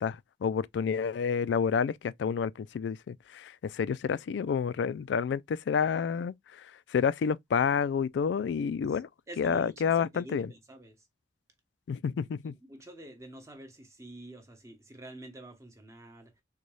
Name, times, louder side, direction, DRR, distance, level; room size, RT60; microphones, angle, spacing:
voice 1, 0.0-9.1 9.4-10.5 11.9-12.5, left 6 dB, 75° left, 0.3 m, -29 dB
voice 2, 9.3-11.0 12.5-16.3, right 1 dB, 15° right, 0.8 m, -48 dB
4.0 x 2.2 x 3.1 m
head